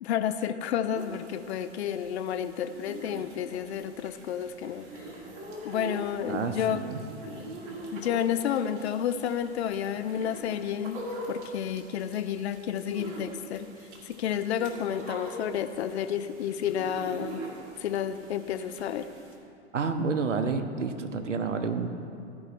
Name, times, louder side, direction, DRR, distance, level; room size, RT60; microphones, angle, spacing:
voice 1, 0.0-4.9 5.6-6.8 7.3-7.4 7.9-13.7 14.0-17.4 17.8-19.1, left 9 dB, 60° left, 10 dB, 0.5 m, -31 dB
sound 1, 0.9-19.4, right 1 dB, 40° right, 1.8 m, -43 dB
voice 2, 6.3-7.0 19.7-21.9, right 4 dB, 80° right, 7 dB, 0.8 m, -29 dB
14.0 x 4.9 x 4.0 m, 2.5 s
figure-of-eight pair, 105°, 36 cm